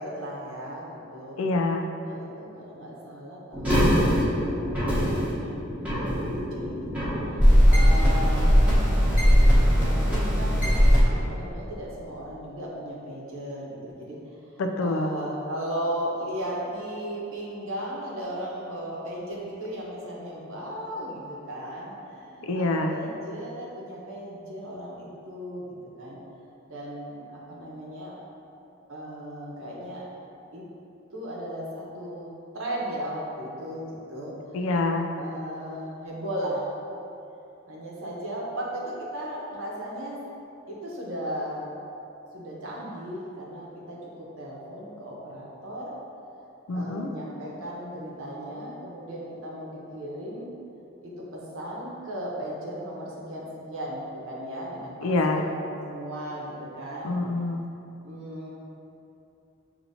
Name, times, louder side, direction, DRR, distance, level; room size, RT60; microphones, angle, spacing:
voice 1, 0.0-1.4 2.0-5.5 6.3-6.9 7.3-8.6 9.8-10.7 11.1-14.5 14.8-26.2 26.7-28.1 28.9-30.1 30.5-30.6 31.1-32.3 32.5-34.3 35.1-36.6 37.7-40.2 40.7-41.6 42.3-45.9 46.7-50.5 51.0-57.1 58.0-58.5, equal, 80° right, -4 dB, 0.9 m, -36 dB
voice 2, 1.4-1.9 14.6-15.1 22.4-22.9 34.5-35.1 46.7-47.1 55.0-55.4 57.0-57.6, left 2 dB, 80° left, 4 dB, 0.4 m, -26 dB
sound 1, 3.5-11.0, equal, 5° right, 1.0 m, -20 dB
6.8 x 2.8 x 2.7 m, 2.8 s
head